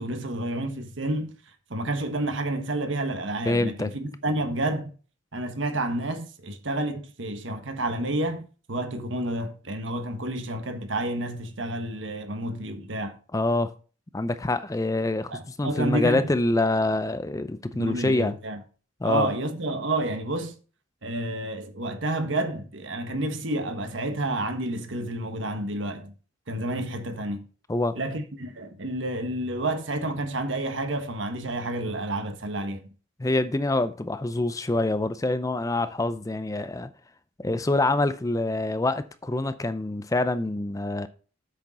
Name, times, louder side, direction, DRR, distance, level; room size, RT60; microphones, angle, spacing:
voice 1, 0.0-1.3 1.7-4.9 5.3-13.1 15.3-16.3 17.7-18.6 19.0-20.5 21.0-26.1 26.5-27.4 27.9-32.9, right 1 dB, 70° right, 1.3 m, -30 dB
voice 2, 3.5-3.9 13.3-13.7 14.1-18.4 19.0-19.3 27.7-28.0 33.2-36.9 37.4-41.1, left 2 dB, 15° left, 0.5 m, -26 dB
8.3 x 6.3 x 4.1 m
head